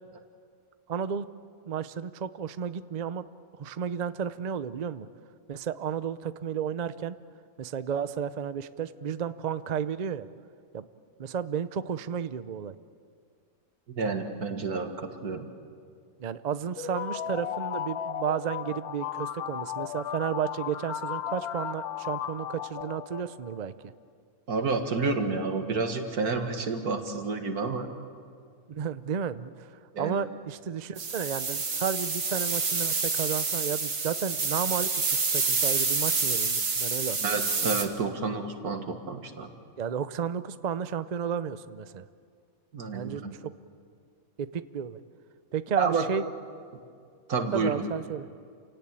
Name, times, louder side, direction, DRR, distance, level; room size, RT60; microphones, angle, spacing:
voice 1, 0.9-1.3 1.7-3.2 3.5-5.1 5.5-7.2 7.6-10.3 10.7-10.8 11.2-12.8 16.2-23.7 28.7-37.2 39.8-42.0 42.9-43.5 44.4-45.0 45.5-46.3 47.5-48.3, right 7 dB, 45° right, 13 dB, 0.5 m, -32 dB
voice 2, 13.9-15.5 24.5-27.9 29.9-30.2 37.2-39.5 42.7-43.4 45.8-46.1 47.3-47.9, right 4 dB, 90° right, 6 dB, 2.3 m, -30 dB
sound 1, 16.8-23.6, left 9 dB, 85° left, 1.3 m, -35 dB
sound 2, 31.0-37.8, right 4 dB, 65° right, 2.3 m, -28 dB
28.5 x 17.5 x 8.9 m, 2.2 s
omnidirectional pair, 1.6 m